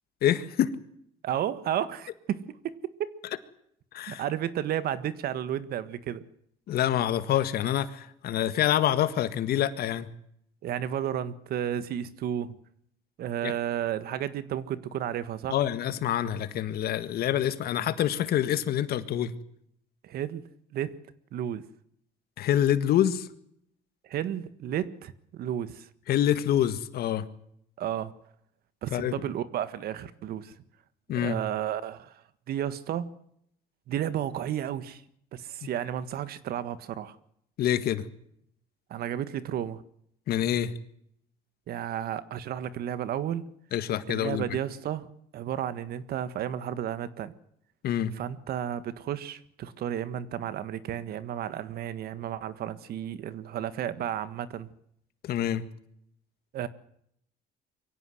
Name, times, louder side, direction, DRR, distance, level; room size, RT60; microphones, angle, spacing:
voice 1, 0.2-0.7 3.9-4.2 6.7-10.1 13.4-13.5 15.5-19.3 22.4-23.3 26.1-27.3 28.9-29.2 31.1-31.4 37.6-38.1 40.3-40.7 43.7-44.4 47.8-48.1 55.2-55.6, left 11 dB, 65° left, 12 dB, 1.8 m, -26 dB
voice 2, 1.2-3.2 4.1-6.2 10.6-12.6 13.2-15.6 20.0-21.0 21.3-21.6 24.0-25.9 27.8-28.1 28.8-30.5 31.1-33.1 33.9-35.0 35.3-37.2 38.9-39.8 41.7-43.5 44.1-47.3 48.1-54.7 56.5-56.7, right 10 dB, 65° right, 14 dB, 1.6 m, -32 dB
23.5 x 16.5 x 7.9 m, 0.71 s
cardioid pair, 110°, 17 cm